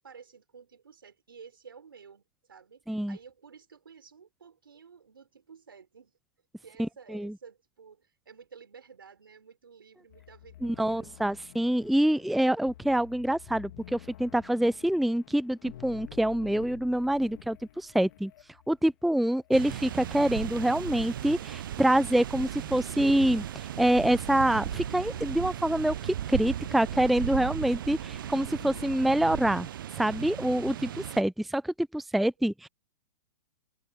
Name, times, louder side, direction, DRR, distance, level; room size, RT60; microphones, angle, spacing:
voice 1, 0.0-6.2 6.6-11.2, right 6 dB, 85° right, 4.6 m, -52 dB
voice 2, 6.8-7.3 10.6-18.3 18.7-29.7 30.0-32.7, right 1 dB, ahead, 0.4 m, -26 dB
sound 1, 10.1-29.7, left 13 dB, 65° left, 2.5 m, -52 dB
sound 2, 19.5-31.2, right 11 dB, 70° right, 0.5 m, -36 dB
open air
hypercardioid pair, 115°, 11 cm